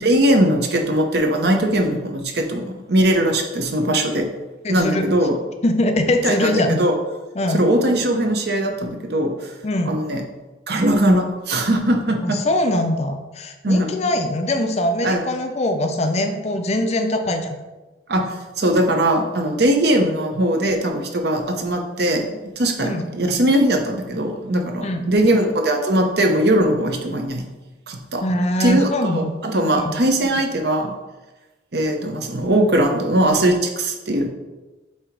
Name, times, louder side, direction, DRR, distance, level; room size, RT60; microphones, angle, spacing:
voice 1, 0.0-4.3 4.7-5.4 6.2-6.5 6.8-6.9 7.5-9.5 9.9-10.2 10.7-12.4 13.6-13.9 15.0-15.2 18.1-18.2 18.6-27.4 27.9-28.2 28.6-30.9 31.7-34.3, right 1 dB, 55° right, 3 dB, 0.8 m, -20 dB
voice 2, 4.6-5.1 5.6-6.8 7.4-7.6 9.6-10.0 12.2-17.6 22.8-23.1 24.8-25.1 28.2-29.3 29.7-29.9, left 1 dB, 35° left, 6 dB, 0.5 m, -22 dB
7.6 x 2.9 x 4.6 m, 1.1 s
head